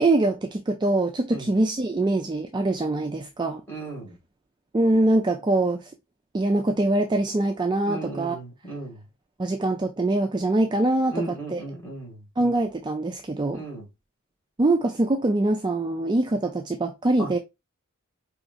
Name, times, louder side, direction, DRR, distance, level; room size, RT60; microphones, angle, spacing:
voice 1, 0.0-3.6 4.7-5.9 6.3-8.4 9.4-11.6 12.4-13.6 14.6-17.4, right 2 dB, 20° right, 0.3 m, -23 dB
voice 2, 3.7-4.2 7.9-9.0 11.1-12.2 13.5-13.9 17.2-17.3, right 2 dB, 10° left, 2.3 m, -35 dB
5.0 x 3.1 x 2.5 m
head